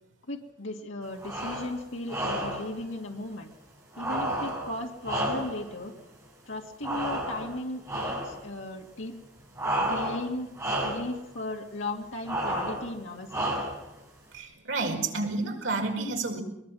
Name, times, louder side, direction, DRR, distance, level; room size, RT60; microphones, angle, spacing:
voice 1, 0.3-3.5 4.0-5.9 6.5-9.2 9.8-10.5 10.8-13.5, left 2 dB, 85° left, 0 dB, 2.3 m, -36 dB
sound 1, 1.2-1.7 2.1-2.7 3.9-5.7 6.8-7.6 7.9-8.4 9.6-10.3 10.6-11.1 12.3-12.9 13.3-13.9, right 1 dB, 15° right, 6.4 m, -31 dB
voice 2, 14.3-16.4, right 3 dB, 85° right, 2 dB, 5.2 m, -30 dB
22.5 x 21.5 x 6.3 m, 0.83 s
head